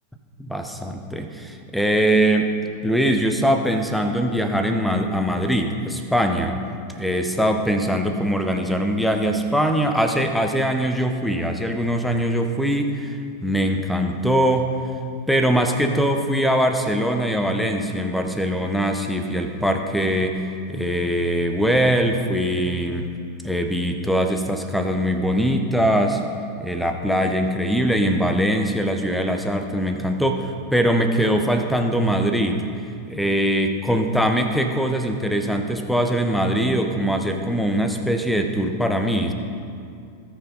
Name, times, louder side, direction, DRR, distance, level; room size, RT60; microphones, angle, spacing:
voice 1, 0.4-2.5 2.8-6.5 7.0-14.7 15.3-23.1 23.4-26.2 26.6-32.7 33.1-39.3, equal, ahead, 5 dB, 0.9 m, -22 dB
17.5 x 5.8 x 4.1 m, 2.4 s
figure-of-eight pair, 90°, 0 cm